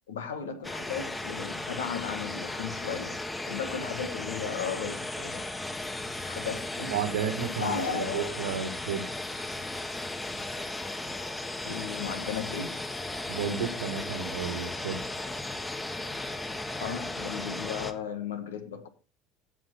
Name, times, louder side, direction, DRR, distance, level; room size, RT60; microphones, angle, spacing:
voice 1, 0.1-3.2 3.5-5.5 6.3-6.9 7.6-8.7 9.1-9.2 11.6-12.8 16.8-18.9, left 6 dB, 85° left, 1.4 m, -35 dB
sound 1, 0.6-17.9, left 2 dB, 15° left, 1.5 m, -36 dB
voice 2, 6.9-9.1 13.3-15.0, right 7 dB, 85° right, 1.8 m, -32 dB
16.5 x 5.7 x 4.0 m
hypercardioid pair, 70°, 0 cm